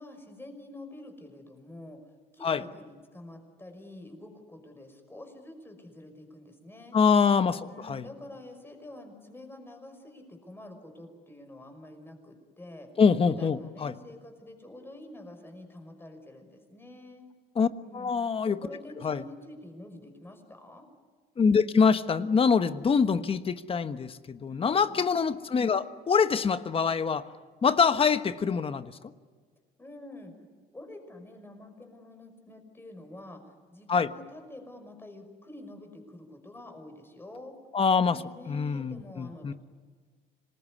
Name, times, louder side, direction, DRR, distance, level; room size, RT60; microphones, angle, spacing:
voice 1, 0.0-2.0 2.3-7.0 7.6-12.9 13.3-17.2 17.8-20.9 24.5-25.0 29.8-30.3 30.7-33.4 33.7-37.5 38.0-39.5, left 1 dB, 15° left, 5 dB, 5.7 m, -47 dB
voice 2, 6.9-8.1 13.0-13.9 17.6-17.7 17.9-18.6 19.0-19.2 21.4-27.3 27.6-29.0 33.9-34.1 37.7-38.2 38.5-39.5, left 5 dB, 35° left, 11 dB, 1.2 m, -25 dB
26.0 x 20.0 x 9.8 m, 1.5 s
cardioid pair, 110°, 17 cm